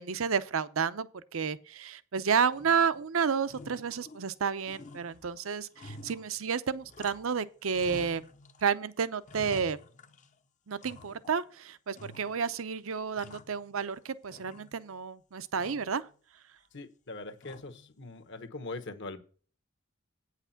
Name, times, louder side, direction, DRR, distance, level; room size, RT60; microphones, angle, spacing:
voice 1, 0.0-8.3 8.6-9.8 10.7-16.1, right 6 dB, 70° right, 0.6 m, -31 dB
sound 1, 2.5-3.1 3.4-4.4 4.6-7.4 7.7-8.7 9.0-10.4 10.8-11.5 11.9-12.6 12.9-14.0 14.3-15.0 15.6-16.0 17.4-17.9, left 2 dB, 35° left, 0.7 m, -50 dB
voice 2, 16.7-19.2, left 2 dB, 55° left, 1.2 m, -42 dB
9.2 x 5.8 x 5.8 m
head